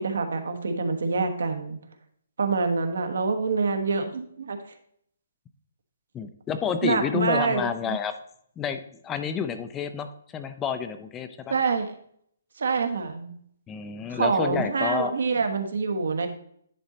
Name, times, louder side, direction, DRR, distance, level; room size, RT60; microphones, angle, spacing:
voice 1, 0.0-1.8 2.4-4.7 6.8-8.0 11.5-11.9 12.6-13.3 14.1-16.3, right 4 dB, 75° right, 6 dB, 1.2 m, -26 dB
voice 2, 6.1-8.1 8.6-11.5 13.7-15.1, left 7 dB, 10° left, 9 dB, 0.3 m, -29 dB
10.0 x 3.9 x 4.1 m, 0.65 s
hypercardioid pair, 170°, 0 cm